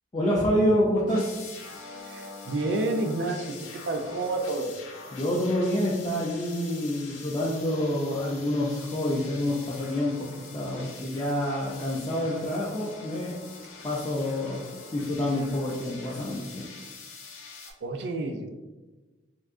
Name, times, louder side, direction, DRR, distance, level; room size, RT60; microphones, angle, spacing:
voice 1, 0.1-1.4 5.1-10.1 10.5-13.3 13.8-14.6 14.9-16.7, left 1 dB, 20° left, -5 dB, 0.4 m, -27 dB
sound 1, 1.1-17.7, left 4 dB, 80° left, 0.5 m, -44 dB
voice 2, 2.0-4.7 17.8-18.5, right 2 dB, 60° right, 5 dB, 0.4 m, -30 dB
3.5 x 2.7 x 2.5 m, 1.2 s
head